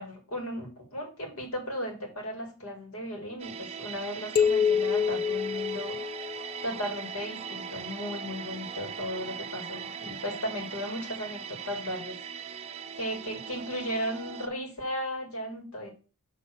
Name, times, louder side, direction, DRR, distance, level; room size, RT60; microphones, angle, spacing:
voice 1, 0.0-6.0 6.6-12.2 12.9-15.9, equal, 80° left, 3 dB, 2.2 m, -36 dB
sound 1, 3.4-14.5, right 7 dB, 30° right, 0.5 m, -40 dB
sound 2, 4.4-6.8, left 7 dB, 45° left, 0.6 m, -27 dB
6.8 x 3.3 x 6.1 m, 0.34 s
head